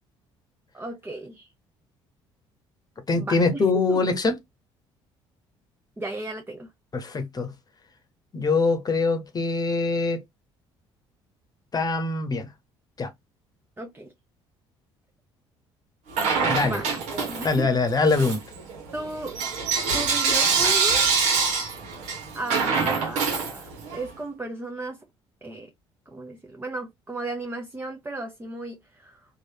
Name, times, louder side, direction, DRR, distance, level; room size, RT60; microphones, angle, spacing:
voice 1, 0.7-1.5 3.2-4.0 6.0-6.7 13.8-14.1 16.6-17.8 18.9-19.4 19.9-21.1 22.3-25.0 25.4-25.7 26.1-29.3, right 2 dB, 15° right, 0.8 m, -35 dB
voice 2, 3.1-4.3 6.9-7.5 8.3-10.2 11.7-12.5 13.0-13.1 16.5-16.8 17.4-18.4, left 3 dB, 30° left, 1.0 m, -23 dB
Bell / Coin (dropping), 16.1-17.7 18.1-24.0, right 5 dB, 70° right, 1.2 m, -25 dB
3.2 x 2.5 x 2.7 m
hypercardioid pair, 65°, 12 cm